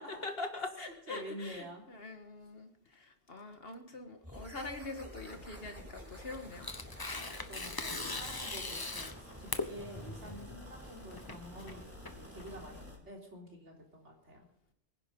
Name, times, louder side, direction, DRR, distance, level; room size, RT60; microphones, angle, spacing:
voice 1, 0.0-6.7 7.3-7.5, left 3 dB, 55° left, 6 dB, 2.0 m, -44 dB
voice 2, 1.1-1.8 7.5-14.5, equal, 80° right, 0 dB, 3.7 m, -48 dB
sound 1, 4.2-13.0, equal, 10° right, 3.7 m, -50 dB
Tearing, 6.0-12.8, left 3 dB, 20° left, 0.9 m, -41 dB
23.5 x 10.5 x 5.4 m, 0.71 s
omnidirectional pair, 1.2 m